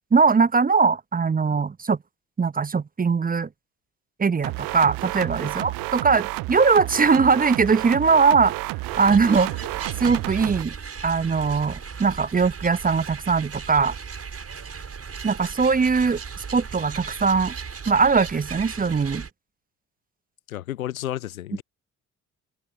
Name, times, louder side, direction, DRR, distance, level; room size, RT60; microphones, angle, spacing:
voice 1, 0.1-2.0 2.4-3.5 4.2-8.5 9.0-9.5 10.0-10.7 11.0-14.0 15.2-16.2 16.5-17.5 17.9-19.2, right 5 dB, 20° right, 1.0 m, -20 dB
sound 1, 4.4-10.6, right 23 dB, 55° right, 0.7 m, -31 dB
sound 2, 8.8-19.3, right 6 dB, 35° right, 7.0 m, -37 dB
voice 2, 20.5-21.6, left 13 dB, 80° left, 0.8 m, -32 dB
open air
figure-of-eight pair, 45°, 41 cm